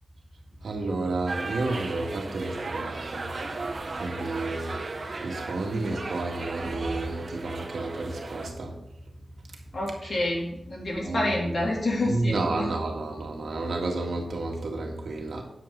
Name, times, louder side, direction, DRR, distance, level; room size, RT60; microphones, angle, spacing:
voice 1, 0.6-3.3 3.6-3.7 4.0-4.7 5.2-8.7 10.0-10.2 11.0-11.3 12.1-15.4, right 2 dB, 80° right, 1 dB, 2.0 m, -31 dB
sound 1, 1.3-8.5, right 3 dB, 50° right, 1.2 m, -36 dB
voice 2, 9.7-12.7, left 1 dB, 55° left, -2 dB, 3.3 m, -28 dB
9.2 x 8.2 x 4.0 m, 0.81 s
wide cardioid pair, 80°, 0 cm